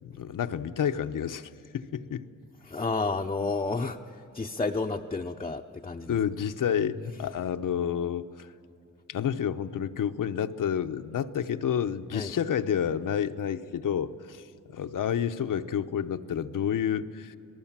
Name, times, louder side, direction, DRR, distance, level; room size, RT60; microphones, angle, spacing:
voice 1, 0.0-2.3 6.1-8.5 9.1-17.4, left 8 dB, 75° left, 8 dB, 0.9 m, -30 dB
voice 2, 2.6-6.2 12.1-12.3, left 3 dB, 20° left, 2 dB, 0.7 m, -31 dB
27.0 x 19.0 x 7.4 m, 2.9 s
wide cardioid pair, 105°, 32 cm